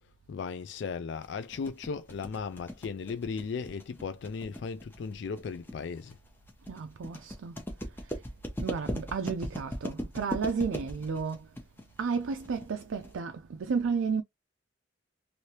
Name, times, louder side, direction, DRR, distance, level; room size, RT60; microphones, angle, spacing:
voice 1, 0.3-6.2, left 5 dB, 60° left, 0.3 m, -36 dB
sound 1, 1.2-13.2, equal, 10° left, 0.8 m, -39 dB
voice 2, 6.7-8.2 8.6-11.5 12.0-14.2, right 5 dB, 85° right, 0.4 m, -33 dB
3.2 x 2.7 x 2.8 m
head